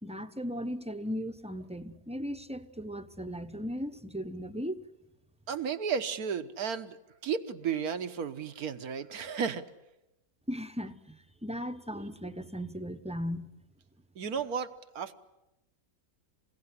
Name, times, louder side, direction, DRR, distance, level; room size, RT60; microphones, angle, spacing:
voice 1, 0.0-4.9 10.5-13.5, equal, 5° right, 0.8 m, -37 dB
voice 2, 5.5-9.6 14.1-15.2, right 7 dB, 75° right, 1.6 m, -33 dB
27.5 x 16.5 x 9.8 m
omnidirectional pair, 1.6 m